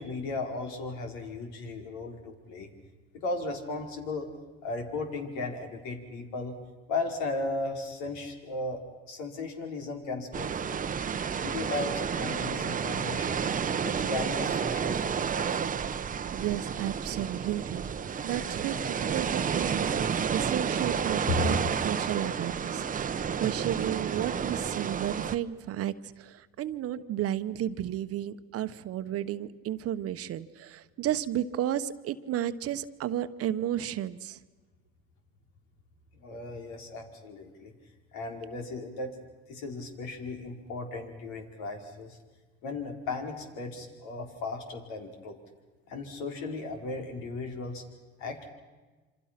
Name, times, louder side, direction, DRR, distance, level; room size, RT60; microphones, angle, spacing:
voice 1, 0.0-2.7 3.1-4.3 4.6-6.5 6.9-10.9 11.4-13.4 13.8-15.7 21.3-21.7 36.2-37.7 38.1-39.2 39.5-42.2 42.6-45.4 45.9-47.8 48.2-48.5, left 3 dB, 75° left, 3 dB, 4.7 m, -36 dB
sound 1, 10.3-25.4, right 7 dB, 25° right, 1.0 m, -31 dB
voice 2, 16.3-17.9 18.2-21.6 21.8-22.9 23.4-34.4, right 11 dB, 50° right, 12 dB, 1.1 m, -33 dB
27.5 x 26.0 x 6.0 m, 1.3 s
supercardioid pair, 105°, 30 cm